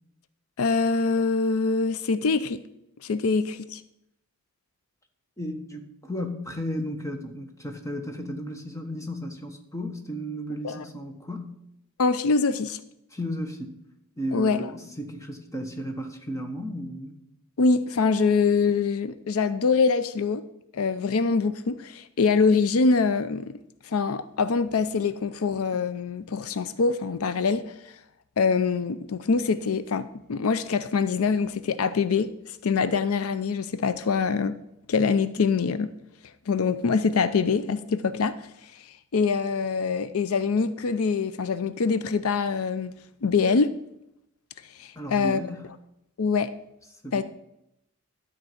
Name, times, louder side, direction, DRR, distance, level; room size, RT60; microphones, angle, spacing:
voice 1, 0.6-2.6 3.0-3.8 10.6-10.8 12.0-12.8 14.3-14.6 17.6-20.4 20.7-23.5 23.8-27.6 28.4-34.6 34.9-35.9 36.5-38.4 38.7-38.9 39.1-42.9 43.2-43.7 44.8-45.4 46.2-46.5 47.1-47.2, left 4 dB, 75° left, 0.5 m, -24 dB
voice 2, 5.4-11.5 13.1-13.8 14.2-17.2 44.9-45.6 47.0-47.2, equal, 15° left, 1.2 m, -34 dB
12.5 x 4.6 x 7.7 m
head